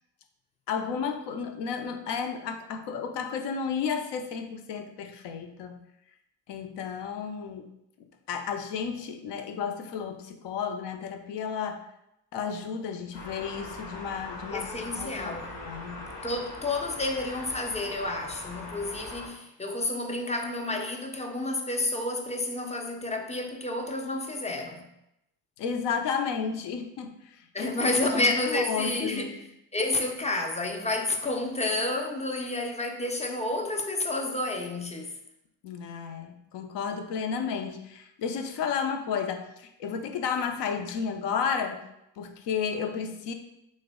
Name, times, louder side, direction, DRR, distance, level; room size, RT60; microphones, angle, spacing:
voice 1, 0.7-5.8 6.5-7.7 8.3-11.8 12.3-16.1 25.6-29.4 35.6-41.9 42.2-43.3, left 6 dB, 60° left, 0.6 m, -32 dB
sound 1, 13.1-19.3, left 2 dB, 85° left, 1.0 m, -41 dB
voice 2, 14.5-15.6 16.2-24.9 27.5-29.3 29.7-35.1, left 2 dB, 15° left, 0.5 m, -30 dB
3.2 x 2.1 x 3.5 m
hypercardioid pair, 50°, 48 cm